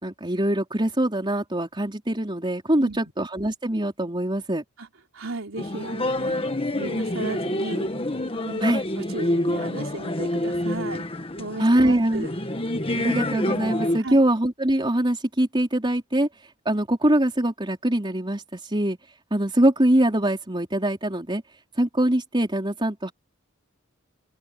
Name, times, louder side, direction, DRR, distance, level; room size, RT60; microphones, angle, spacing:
voice 1, 0.0-4.6 8.6-8.8 11.6-12.3 13.0-16.3 16.7-19.0 19.3-21.4 21.8-23.1, right 1 dB, 25° right, 4.1 m, -23 dB
voice 2, 5.1-6.5 6.8-7.9 8.4-11.0 11.4-12.3 14.0-14.2, right 2 dB, 75° right, 3.7 m, -35 dB
sound 1, 5.6-14.0, left 1 dB, 25° left, 1.6 m, -27 dB
head